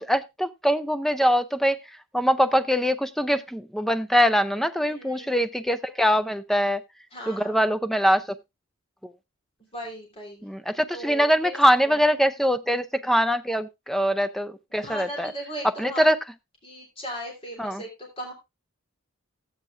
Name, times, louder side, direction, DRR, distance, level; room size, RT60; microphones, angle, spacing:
voice 1, 0.0-1.8 2.1-6.8 7.3-8.4 9.0-9.1 10.4-15.3 15.6-16.2 17.6-17.8, equal, ahead, 0.4 m, -23 dB
voice 2, 4.8-5.4 7.1-7.7 9.7-10.5 10.9-11.6 11.8-12.0 14.8-16.0 16.6-18.3, equal, 30° left, 3.3 m, -38 dB
14.5 x 8.9 x 2.5 m
head